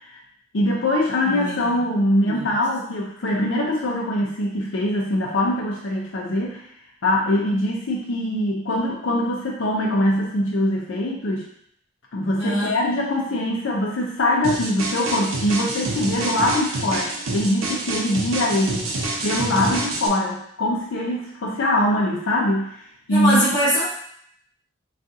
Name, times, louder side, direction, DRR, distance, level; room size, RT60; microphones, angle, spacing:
voice 1, 0.5-6.6 7.0-11.5 12.1-18.9 19.2-22.7 23.1-23.4, left 1 dB, 65° left, -3 dB, 0.5 m, -22 dB
voice 2, 1.2-1.7 2.2-2.5 12.4-12.7 23.1-23.8, equal, 15° left, -14 dB, 1.4 m, -23 dB
sound 1, 14.4-20.1, right 2 dB, 90° right, 0.6 m, -27 dB
3.5 x 2.4 x 2.7 m, 0.69 s
head